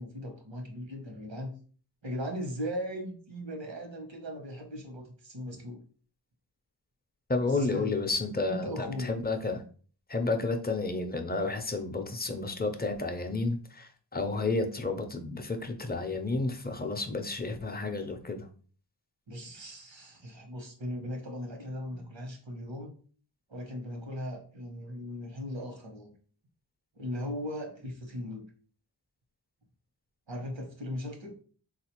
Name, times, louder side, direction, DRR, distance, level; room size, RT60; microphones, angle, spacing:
voice 1, 0.0-1.5 2.0-5.8 7.4-8.0 8.5-9.2 19.3-22.9 23.5-26.1 27.0-28.4 30.3-31.3, equal, 85° right, 1.0 m, -38 dB
voice 2, 7.3-9.6 10.1-18.5, left 3 dB, 20° left, 0.5 m, -31 dB
3.7 x 2.4 x 2.9 m
wide cardioid pair, 45°, 44 cm